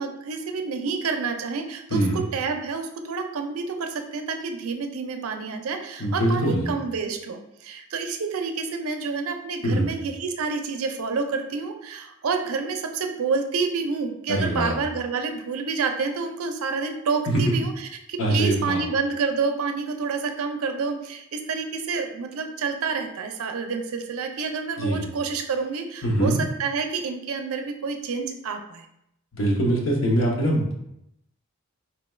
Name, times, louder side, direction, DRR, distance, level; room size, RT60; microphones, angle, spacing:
voice 1, 0.0-28.9, right 4 dB, 80° right, 5 dB, 0.4 m, -28 dB
voice 2, 1.9-2.2 6.0-6.7 9.6-9.9 14.3-14.7 17.3-17.4 18.2-18.8 24.8-25.0 26.0-26.4 29.3-30.7, right 1 dB, 65° left, -1 dB, 0.8 m, -23 dB
4.2 x 2.3 x 3.1 m, 0.80 s
head